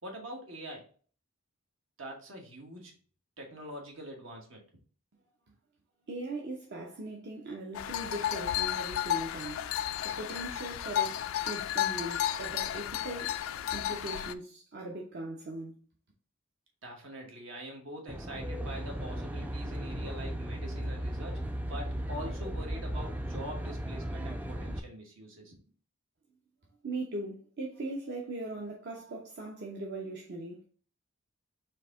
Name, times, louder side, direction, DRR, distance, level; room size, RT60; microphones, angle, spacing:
voice 1, 0.0-0.9 2.0-2.9 3.4-4.6 16.8-25.6, right 1 dB, 75° right, 1.3 m, -44 dB
voice 2, 6.1-9.7 10.0-11.2 11.5-13.4 13.7-15.8 26.8-30.6, right 2 dB, 55° right, 0.7 m, -39 dB
sound 1, 7.7-14.3, left 11 dB, 85° left, 0.3 m, -33 dB
Aircraft, 18.1-24.8, equal, 10° right, 0.3 m, -36 dB
4.6 x 2.8 x 3.6 m
head